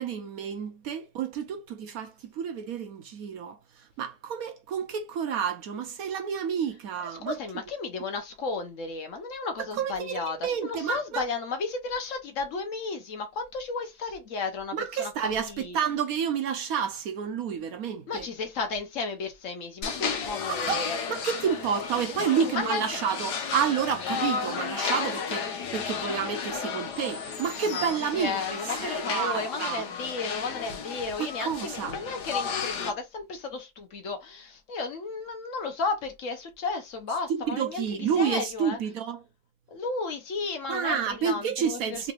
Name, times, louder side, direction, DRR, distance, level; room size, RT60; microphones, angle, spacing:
voice 1, 0.0-3.6 4.0-7.4 9.7-11.3 14.7-18.3 20.5-29.8 31.2-32.0 37.5-39.2 40.7-42.1, right 7 dB, 65° right, 1.0 m, -30 dB
voice 2, 7.0-15.8 18.1-21.0 22.3-22.8 27.7-27.8 28.2-37.8 38.2-38.8 39.7-42.1, left 4 dB, 55° left, 1.0 m, -33 dB
sound 1, 19.8-32.9, left 6 dB, 75° left, 1.4 m, -33 dB
3.7 x 3.2 x 2.4 m
omnidirectional pair, 1.8 m